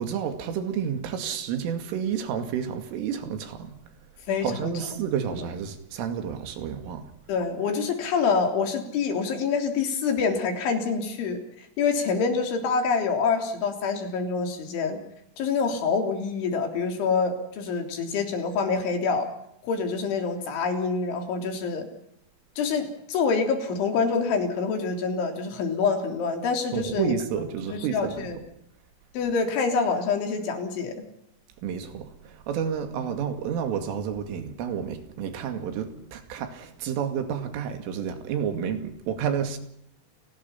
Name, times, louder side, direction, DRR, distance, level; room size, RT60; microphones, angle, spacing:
voice 1, 0.0-3.8 4.4-7.1 26.7-28.3 31.6-39.6, right 8 dB, 85° right, 5.0 m, -30 dB
voice 2, 4.3-4.7 7.3-15.0 15.4-19.3 19.6-21.9 22.6-27.1 27.7-28.4 29.1-31.1, left 5 dB, 70° left, 5.8 m, -26 dB
30.0 x 19.0 x 5.8 m
omnidirectional pair, 5.6 m